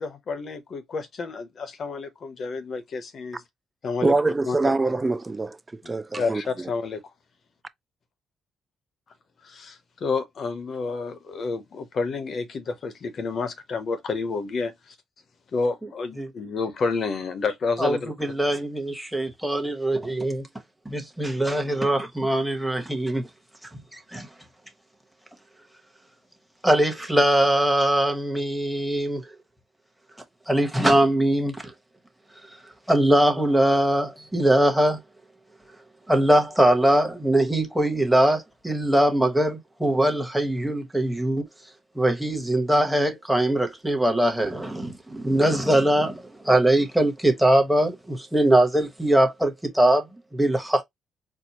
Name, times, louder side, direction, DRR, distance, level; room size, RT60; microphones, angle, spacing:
voice 1, 0.0-3.4 3.8-4.1 4.4-4.6 6.2-7.0 9.4-15.0 15.5-18.1, left 4 dB, 55° left, 0.8 m, -29 dB
voice 2, 4.0-6.4, right 3 dB, 20° right, 0.4 m, -24 dB
voice 3, 17.8-20.4 20.8-23.3 24.1-24.3 26.6-29.2 30.5-31.6 32.9-35.0 36.1-41.4 41.9-50.1 50.3-50.8, right 1 dB, 5° right, 1.1 m, -21 dB
4.4 x 2.1 x 2.8 m
cardioid pair, 90°, 0 cm